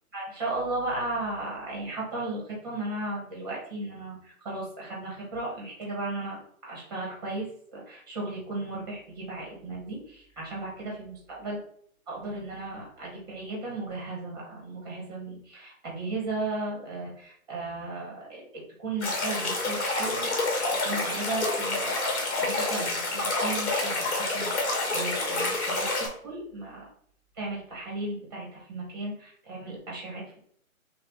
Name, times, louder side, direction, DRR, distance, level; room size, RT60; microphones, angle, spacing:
voice 1, 0.1-6.4 6.7-11.6 12.1-22.0 22.4-26.9 27.3-30.4, right 2 dB, 15° right, -4 dB, 1.1 m, -35 dB
sound 1, 19.0-26.1, left 2 dB, 50° left, 1.7 m, -28 dB
6.0 x 2.3 x 3.5 m, 0.63 s
hypercardioid pair, 170°, 42 cm